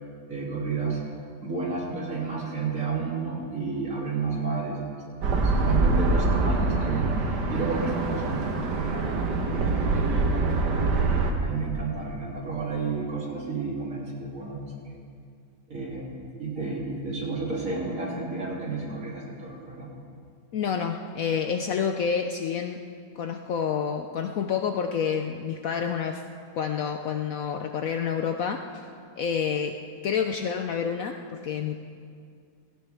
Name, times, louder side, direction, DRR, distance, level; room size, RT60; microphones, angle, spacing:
voice 1, 0.3-1.0 1.4-5.3 5.6-10.7 10.9-14.6 14.9-15.0 15.7-19.9, right 4 dB, 50° right, -4 dB, 3.2 m, -32 dB
sound 1, 5.2-11.3, right 3 dB, 75° right, 1.8 m, -24 dB
voice 2, 20.5-22.8 23.2-26.2 26.5-28.8 29.2-29.7 30.0-31.8, left 7 dB, 65° left, 5 dB, 0.9 m, -28 dB
17.0 x 16.5 x 3.4 m, 2.2 s
omnidirectional pair, 1.9 m